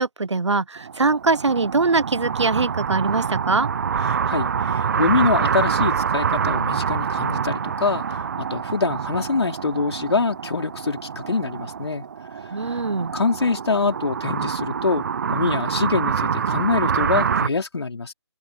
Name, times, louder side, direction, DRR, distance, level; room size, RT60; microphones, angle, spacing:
voice 1, 0.0-3.7 12.5-13.1, right 3 dB, 85° right, 1.0 m, -22 dB
sound 1, 0.8-17.5, right 7 dB, 40° right, 0.9 m, -26 dB
voice 2, 4.1-12.0 13.1-18.1, left 4 dB, 70° left, 4.9 m, -24 dB
open air
figure-of-eight pair, 160°, 15 cm